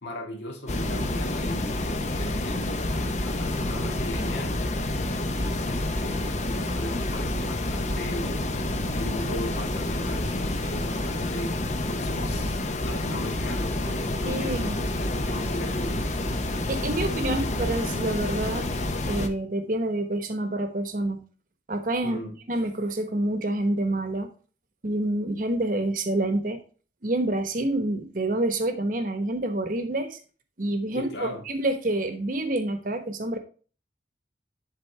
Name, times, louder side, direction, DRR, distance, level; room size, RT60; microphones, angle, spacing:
voice 1, 0.0-4.6 5.4-8.5 8.9-16.1 22.0-22.4 30.9-31.4, left 1 dB, 70° left, 1.9 m, -38 dB
sound 1, 0.7-19.3, left 1 dB, 40° left, 0.8 m, -28 dB
voice 2, 14.2-14.8 16.7-18.7 19.1-21.2 21.7-24.3 24.8-26.6 27.0-30.2 30.6-33.4, right 1 dB, 50° right, 1.1 m, -27 dB
11.0 x 3.8 x 3.3 m
head